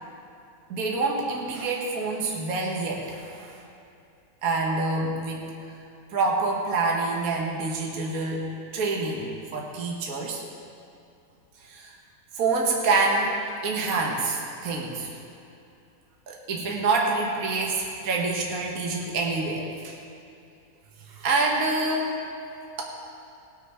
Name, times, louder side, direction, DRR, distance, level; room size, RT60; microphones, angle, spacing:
voice 1, 0.7-3.5 4.4-5.4 6.1-10.4 11.7-11.9 12.3-13.4 13.6-15.1 16.3-19.9 21.1-22.1, right 3 dB, 55° right, -1 dB, 1.6 m, -27 dB
19.5 x 6.9 x 4.3 m, 2.7 s
omnidirectional pair, 1.8 m